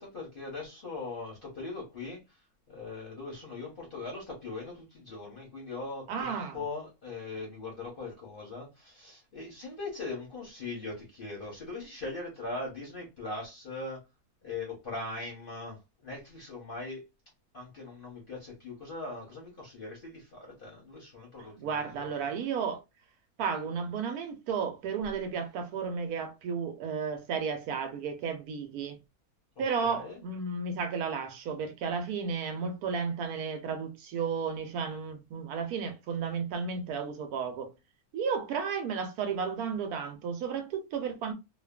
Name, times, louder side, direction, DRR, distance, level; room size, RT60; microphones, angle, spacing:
voice 1, 0.0-2.4 2.7-14.0 14.4-17.0 17.5-22.2 29.8-30.2, left 3 dB, 45° left, 0.8 m, -40 dB
voice 2, 6.1-6.6 21.4-22.8 23.4-29.0 29.6-37.7 38.1-41.3, right 6 dB, 80° right, 1.1 m, -33 dB
2.7 x 2.3 x 2.2 m
omnidirectional pair, 1.6 m